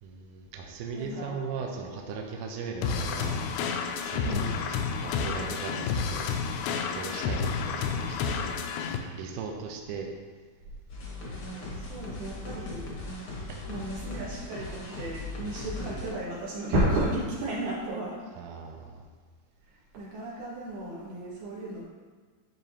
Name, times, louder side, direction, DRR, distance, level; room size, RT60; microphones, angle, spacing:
voice 1, 0.0-3.4 3.8-4.5 5.0-6.3 6.9-8.6 9.1-10.1 13.5-13.7 18.4-19.0, right 5 dB, 90° right, 1 dB, 1.8 m, -38 dB
voice 2, 0.9-1.4 4.2-4.5 11.8-12.9 13.7-18.2 19.9-21.8, right 1 dB, 60° right, -8 dB, 3.4 m, -33 dB
sound 1, 2.8-9.0, left 6 dB, 80° left, 2.2 m, -30 dB
sound 2, 10.9-16.1, left 2 dB, 60° left, 1.4 m, -38 dB
12.0 x 4.1 x 2.9 m, 1.5 s
omnidirectional pair, 4.5 m